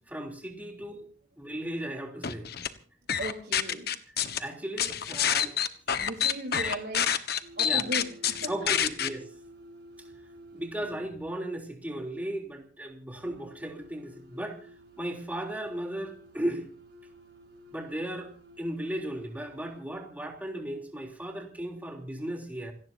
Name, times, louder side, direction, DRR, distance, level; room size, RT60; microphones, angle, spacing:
voice 1, 0.1-1.1 1.4-2.5 4.4-5.5 6.6-6.7 7.6-7.8 8.5-9.3 10.5-14.6 15.0-16.6 17.7-22.7, right 1 dB, 10° right, 1 dB, 3.4 m, -36 dB
sound 1, 2.2-2.7 3.1-4.4 4.8-9.1, left 9 dB, 60° left, 1.3 m, -27 dB
voice 2, 3.2-4.0 5.6-7.1 7.6-9.0, right 1 dB, 65° right, -2 dB, 3.8 m, -38 dB
sound 2, 7.4-11.3 13.2-19.8, right 1 dB, 80° right, 6.1 m, -52 dB
28.0 x 18.0 x 2.7 m, 0.39 s
head